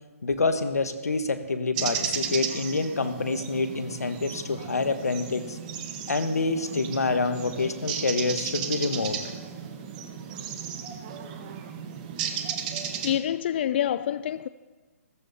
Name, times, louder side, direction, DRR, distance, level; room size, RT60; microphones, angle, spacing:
voice 1, 0.2-5.6 6.1-9.2, left 3 dB, 85° left, 1.3 m, -27 dB
sound 1, 1.7-13.2, right 8 dB, 30° right, 1.2 m, -34 dB
voice 2, 13.0-14.5, left 10 dB, 45° left, 0.3 m, -26 dB
15.0 x 14.0 x 4.2 m
hypercardioid pair, 145°, 8 cm